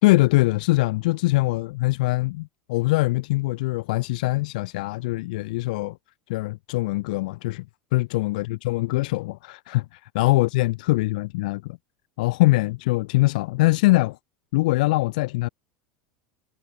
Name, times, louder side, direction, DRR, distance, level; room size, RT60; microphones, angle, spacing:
voice 1, 0.0-6.0 6.3-7.6 7.9-11.8 12.2-14.2 14.5-15.5, left 21 dB, 60° left, 3.7 m, -23 dB
figure-of-eight pair, 75°, 5 cm